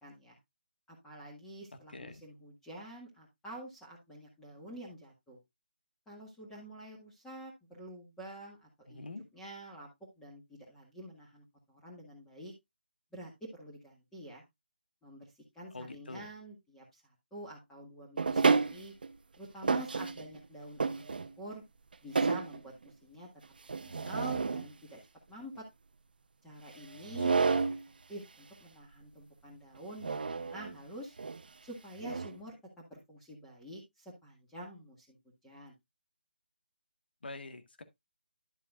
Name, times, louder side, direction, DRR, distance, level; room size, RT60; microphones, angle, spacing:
voice 1, 0.0-0.4 0.9-5.4 6.1-9.1 9.3-9.9 10.2-12.5 13.1-14.4 15.0-17.0 17.3-18.9 19.4-21.6 22.0-23.3 23.8-25.0 25.3-25.6 26.4-27.4 28.1-31.2 31.6-35.1 35.4-35.7, right 1 dB, 5° left, 1.8 m, -48 dB
voice 2, 1.9-2.2 8.9-9.3 15.7-16.3 27.1-27.7 37.2-37.8, left 2 dB, 70° left, 1.7 m, -46 dB
sound 1, 18.2-19.1 19.6-20.4 20.8-21.5 21.9-22.6 23.7-24.7 27.0-27.9 30.0-30.8 31.2-31.4 32.0-32.4, right 4 dB, 60° right, 0.8 m, -30 dB
11.0 x 7.4 x 2.4 m
figure-of-eight pair, 160°, 6 cm